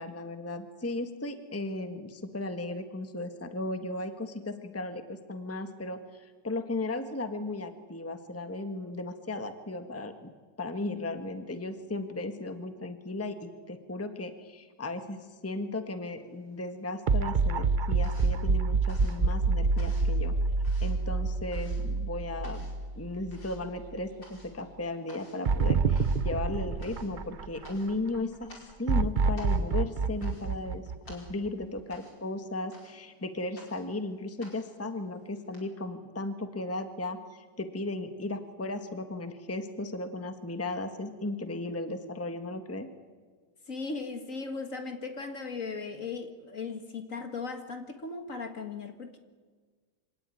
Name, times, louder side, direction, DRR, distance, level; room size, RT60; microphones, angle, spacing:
voice 1, 0.0-10.3 10.6-20.3 20.8-28.5 28.8-30.8 31.1-42.9, left 2 dB, 10° left, 8 dB, 1.4 m, -36 dB
sound 1, 16.2-17.0 17.3-35.6, left 1 dB, 75° left, 5.8 m, -54 dB
sound 2, 17.1-23.4 23.8-23.9 25.5-27.9 28.9-31.6, right 4 dB, 70° right, 0.4 m, -27 dB
voice 2, 43.7-49.2, left 4 dB, 45° left, 7 dB, 2.0 m, -37 dB
25.5 x 18.0 x 9.8 m, 1.5 s
omnidirectional pair, 2.0 m